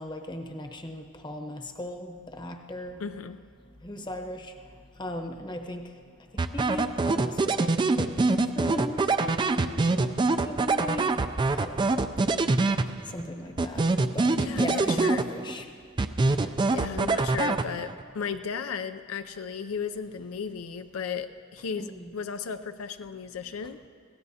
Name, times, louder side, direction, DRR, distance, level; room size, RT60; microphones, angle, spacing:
voice 1, 0.0-3.0 3.8-4.5 5.0-5.9 6.3-9.8 10.4-11.1 11.5-12.3 13.1-13.8 14.1-15.6 16.4-16.5 21.8-22.1, left 1 dB, 20° left, 5 dB, 0.9 m, -38 dB
voice 2, 3.0-3.4 13.7-13.8 14.4-15.3 16.7-21.9 22.1-23.8, left 6 dB, 75° left, 10 dB, 0.4 m, -35 dB
sound 1, 6.4-13.2 13.6-15.6 16.0-18.0, right 3 dB, 20° right, 0.3 m, -25 dB
23.0 x 16.5 x 2.8 m, 2.4 s
head